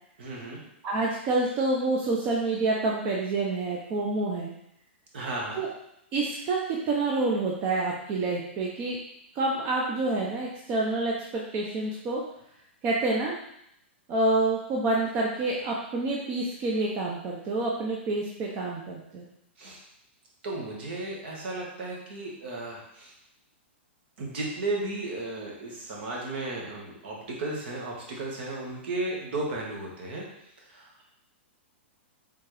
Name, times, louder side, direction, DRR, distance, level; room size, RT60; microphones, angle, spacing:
voice 1, 0.2-0.6 5.1-5.6 19.6-19.8 20.4-23.1 24.2-30.2 30.6-31.0, right 2 dB, 60° right, -2 dB, 1.6 m, -34 dB
voice 2, 0.8-4.5 5.5-5.7 6.1-9.0 9.3-12.2 12.8-13.3 14.1-19.2, right 2 dB, 30° right, -2 dB, 0.6 m, -28 dB
4.2 x 3.7 x 3.3 m, 0.77 s
hypercardioid pair, 145°, 6 cm